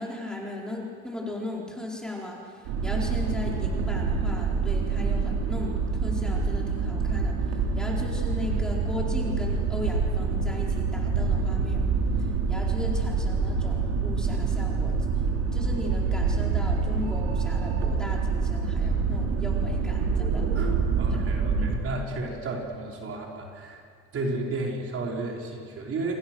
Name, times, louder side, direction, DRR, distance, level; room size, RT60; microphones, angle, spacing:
voice 1, 0.0-11.8 12.2-15.0 15.5-20.5 21.1-21.9, left 2 dB, ahead, -3 dB, 4.6 m, -37 dB
sound 1, 2.6-21.8, right 4 dB, 85° right, 3.8 m, -26 dB
voice 2, 20.5-23.8 24.1-26.2, right 2 dB, 50° right, -1 dB, 5.2 m, -33 dB
29.5 x 23.0 x 6.4 m, 2.3 s
cardioid pair, 115°, 30 cm